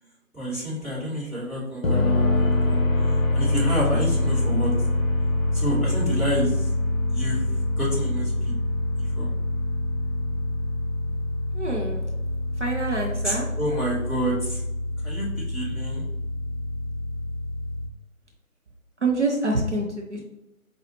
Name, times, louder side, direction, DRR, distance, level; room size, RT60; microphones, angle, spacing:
voice 1, 0.3-2.8 3.3-4.7 5.5-6.6 7.1-7.4 7.8-8.5 9.1-9.3 13.2-14.6 15.0-16.0, equal, 5° left, -21 dB, 1.5 m, -29 dB
sound 1, 1.8-17.9, left 2 dB, 65° left, 0.8 m, -25 dB
voice 2, 11.5-12.1 12.6-13.5 19.0-20.2, right 2 dB, 55° right, -1 dB, 0.6 m, -26 dB
4.9 x 2.4 x 2.9 m, 0.93 s
figure-of-eight pair, 155°, 43 cm